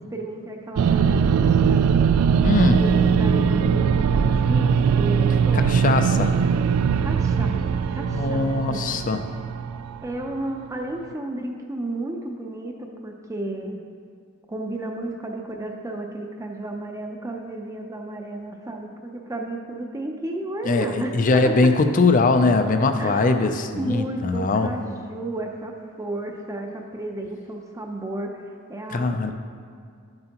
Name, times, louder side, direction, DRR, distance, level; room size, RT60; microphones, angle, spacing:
voice 1, 0.1-1.9 2.8-5.8 6.1-6.3 7.0-8.8 10.0-13.8 14.5-21.7 23.0-29.3, right 1 dB, 15° right, 2 dB, 0.5 m, -33 dB
sound 1, 0.8-10.2, right 6 dB, 85° right, 0.3 m, -20 dB
voice 2, 2.4-2.8 5.5-6.3 8.1-9.2 20.7-24.7 28.9-29.3, left 3 dB, 35° left, 8 dB, 0.4 m, -21 dB
10.5 x 7.8 x 2.9 m, 2.3 s
head